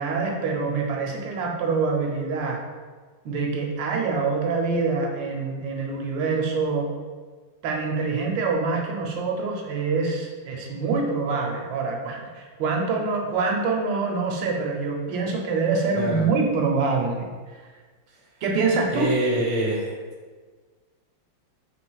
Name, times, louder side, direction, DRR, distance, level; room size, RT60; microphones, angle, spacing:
voice 1, 0.0-2.6 3.2-6.9 7.6-17.6 18.4-19.1, right 4 dB, 75° right, 0 dB, 1.3 m, -25 dB
voice 2, 16.0-16.3 18.9-19.9, right 1 dB, 55° right, -4 dB, 0.3 m, -25 dB
4.5 x 3.6 x 2.2 m, 1.4 s
omnidirectional pair, 2.1 m